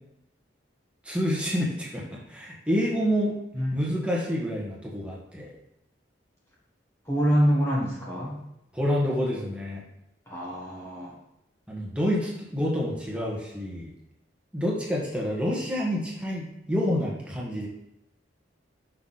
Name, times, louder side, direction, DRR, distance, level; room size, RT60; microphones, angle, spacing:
voice 1, 1.0-3.3 3.7-5.5 8.7-9.8 11.7-13.9 14.5-17.7, equal, 5° right, -4 dB, 1.4 m, -28 dB
voice 2, 7.0-8.4 10.3-11.1, equal, 15° left, -5 dB, 1.2 m, -25 dB
6.0 x 5.7 x 4.0 m, 0.85 s
head